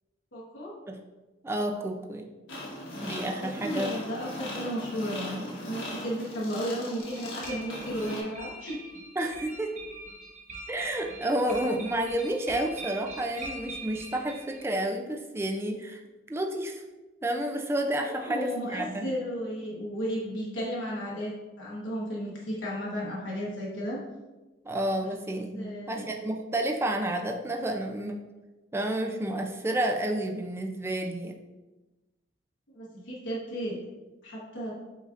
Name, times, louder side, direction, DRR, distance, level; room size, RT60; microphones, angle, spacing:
voice 1, 0.3-0.7 3.2-8.9 18.0-21.3 21.6-24.0 25.0-25.1 25.6-26.1 32.7-33.8 34.2-34.7, equal, 70° left, -5 dB, 1.2 m, -34 dB
voice 2, 1.4-2.3 3.0-4.0 9.2-9.7 10.7-16.0 16.3-16.8 17.2-19.1 24.6-28.3 28.7-31.3, right 1 dB, 15° right, 2 dB, 0.3 m, -30 dB
sound 1, 2.5-8.2, left 1 dB, 90° left, 1.2 m, -39 dB
sound 2, 7.0-14.7, right 2 dB, 40° right, 0.8 m, -43 dB
8.0 x 2.7 x 2.5 m, 1.1 s
head